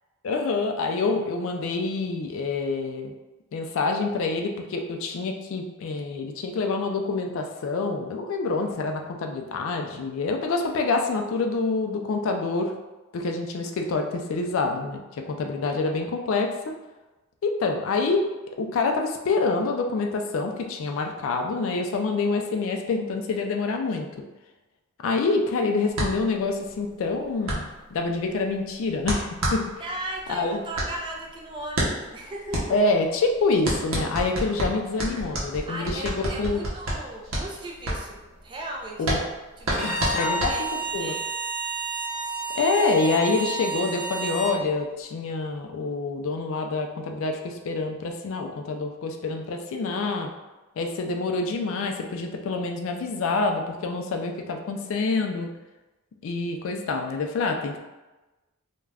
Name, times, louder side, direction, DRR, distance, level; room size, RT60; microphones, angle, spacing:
voice 1, 0.2-3.1 3.5-12.7 13.1-15.0 15.3-16.5 17.4-18.3 18.6-24.1 25.0-27.7 27.9-29.7 30.3-30.6 32.7-36.6 39.0-39.2 39.8-40.5 40.9-41.2 42.6-50.3 50.8-55.5 56.2-57.8, left 3 dB, 65° left, 3 dB, 0.3 m, -26 dB
voice 2, 15.6-16.0 29.8-32.8 35.7-39.3 39.6-40.7 41.0-41.3, right 1 dB, 20° right, -1 dB, 0.4 m, -37 dB
sound 1, 25.9-41.0, right 1 dB, 70° right, 0.7 m, -30 dB
Bowed string instrument, 39.7-44.6, right 2 dB, 5° left, 0.7 m, -30 dB
2.3 x 2.1 x 3.3 m, 1.1 s
head